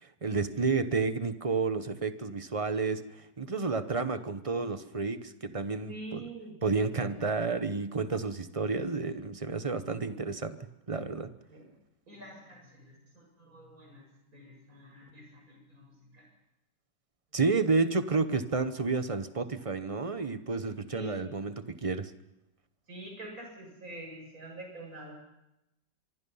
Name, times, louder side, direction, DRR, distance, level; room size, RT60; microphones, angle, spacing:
voice 1, 0.2-6.2 6.6-10.6 10.9-11.3 17.3-22.1, right 4 dB, 30° right, 11 dB, 0.7 m, -30 dB
voice 2, 5.9-6.6 7.1-7.2 10.0-10.2 11.5-11.7 12.1-16.3 20.9-21.2 22.9-25.1, right 1 dB, 50° right, 1 dB, 7.6 m, -46 dB
25.0 x 23.5 x 5.6 m, 0.89 s
omnidirectional pair, 1.9 m